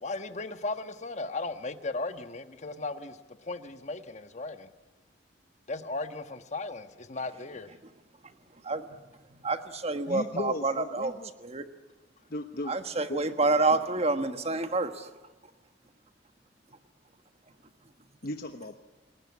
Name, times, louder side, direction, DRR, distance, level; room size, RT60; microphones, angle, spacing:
voice 1, 0.0-4.7 5.7-7.8, left 3 dB, 40° left, 8 dB, 1.4 m, -36 dB
voice 2, 9.4-11.1 11.4-11.6 12.7-15.1, right 3 dB, 35° right, 8 dB, 1.4 m, -28 dB
voice 3, 10.1-11.3 12.3-12.8 13.1-13.2 18.2-18.8, left 2 dB, 55° left, 6 dB, 1.2 m, -36 dB
28.5 x 19.5 x 8.5 m, 1.2 s
head